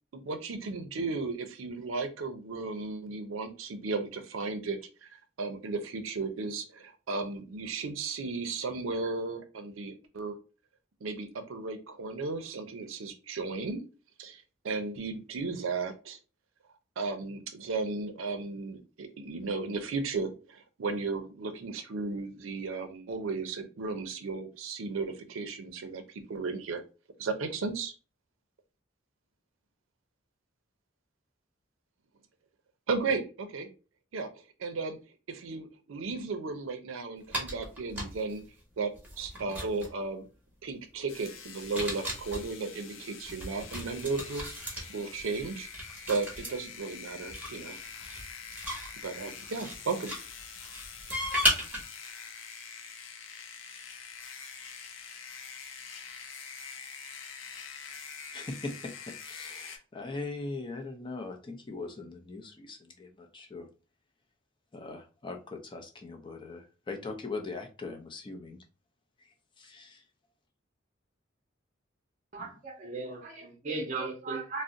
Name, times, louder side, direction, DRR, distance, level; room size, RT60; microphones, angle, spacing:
voice 1, 0.1-5.1 5.4-10.4 11.0-13.8 14.2-16.2 17.0-26.8 27.2-27.9 32.9-33.7 34.1-34.3 34.6-35.0 35.3-38.4 38.8-38.9 39.2-40.3 40.6-44.5 44.9-45.7 46.1-47.8 49.0-50.1, right 4 dB, 80° right, 0.5 m, -35 dB
sound 1, 37.3-38.4 38.9-40.0 41.6-42.5 43.2-46.5 47.3-49.8 50.0-51.8, equal, 10° right, 0.8 m, -35 dB
sound 2, 41.1-59.8, left 6 dB, 85° left, 0.6 m, -45 dB
voice 2, 58.3-63.7 64.7-68.6 69.6-70.0 72.4-72.5, left 3 dB, 25° left, 0.5 m, -40 dB
voice 3, 72.3-74.6, right 3 dB, 40° right, 0.6 m, -36 dB
2.5 x 2.0 x 3.7 m
head